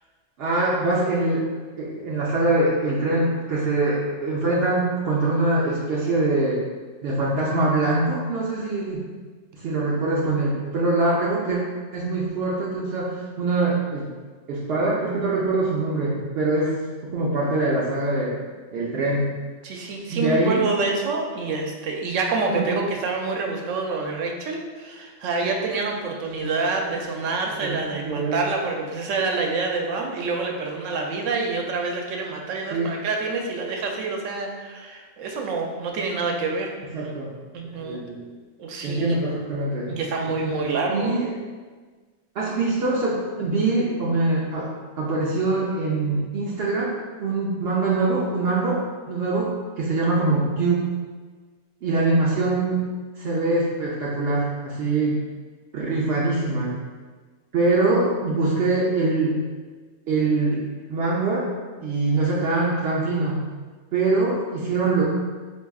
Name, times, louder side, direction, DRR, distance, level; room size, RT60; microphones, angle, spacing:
voice 1, 0.4-1.5 1.8-6.6 7.0-9.1 9.6-11.6 11.9-14.1 14.5-16.8 17.1-18.3 18.7-19.3 20.1-20.6 22.5-22.7 26.4-26.5 27.6-28.4 32.7-32.9 36.9-37.3 37.6-38.2 38.8-39.9 40.2-41.3 42.3-44.7 45.0-46.9 47.2-48.8 49.1-50.8 51.8-52.9 53.2-55.2 55.7-56.7 57.5-59.4 60.1-60.6 60.9-61.5 61.8-63.4 63.9-65.0, right 2 dB, 65° right, -6 dB, 0.7 m, -23 dB
voice 2, 19.6-36.7 37.0-37.1 37.5-38.0 38.6-39.2 39.9-41.2, right 3 dB, 90° right, 1 dB, 0.9 m, -27 dB
4.5 x 2.6 x 2.3 m, 1.4 s
omnidirectional pair, 1.3 m